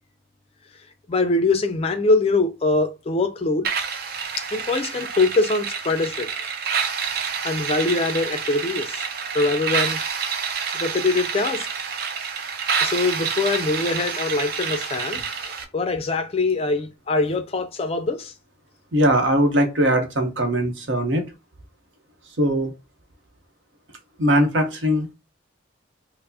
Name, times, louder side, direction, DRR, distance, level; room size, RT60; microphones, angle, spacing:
voice 1, 1.1-3.7 4.4-6.3 7.4-9.0 9.3-10.0 10.7-11.7 12.8-15.2 15.7-18.3, left 3 dB, 30° left, 0.4 m, -23 dB
sound 1, 3.6-15.6, right 6 dB, 50° right, 0.4 m, -28 dB
voice 2, 18.9-21.3 22.4-22.7 24.2-25.1, equal, 70° right, 0.8 m, -20 dB
4.4 x 2.0 x 2.7 m
head